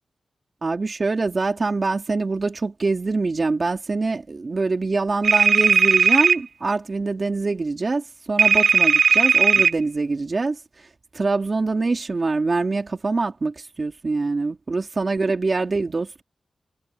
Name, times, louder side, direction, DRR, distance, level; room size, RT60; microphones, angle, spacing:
voice 1, 0.6-10.9 11.1-16.2, right 3 dB, 35° right, 3.5 m, -24 dB
sound 1, 5.2-6.4 8.4-9.7, right 5 dB, 75° right, 0.8 m, -16 dB
wide cardioid pair, 165°, 0 cm